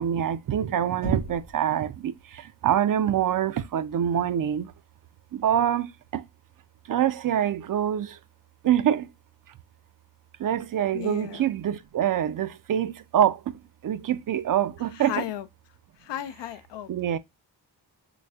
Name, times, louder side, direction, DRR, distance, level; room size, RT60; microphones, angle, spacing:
voice 1, 0.0-4.7 5.3-6.2 6.9-8.2 8.6-9.1 10.4-13.5 13.8-15.2 16.9-17.2, right 10 dB, 50° right, 0.4 m, -25 dB
Knock, 1.0-1.7, equal, 90° right, 1.8 m, -34 dB
voice 2, 10.9-11.4 15.0-15.5 16.0-16.9, left 12 dB, 75° left, 0.5 m, -34 dB
4.0 x 3.2 x 2.3 m
supercardioid pair, 45°, 43 cm